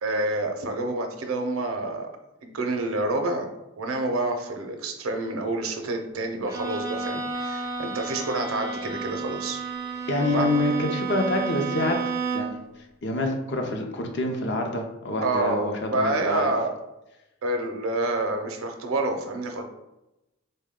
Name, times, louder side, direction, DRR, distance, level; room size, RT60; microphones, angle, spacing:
voice 1, 0.0-2.1 2.4-3.5 3.8-9.6 10.3-10.5 15.2-16.7 17.4-19.6, right 2 dB, 80° right, 4 dB, 0.6 m, -28 dB
Bowed string instrument, 6.5-12.7, right 5 dB, 15° right, 0.4 m, -31 dB
voice 2, 10.1-12.0 12.3-16.5, left 2 dB, 50° left, 3 dB, 0.5 m, -27 dB
3.8 x 2.2 x 3.5 m, 0.94 s
head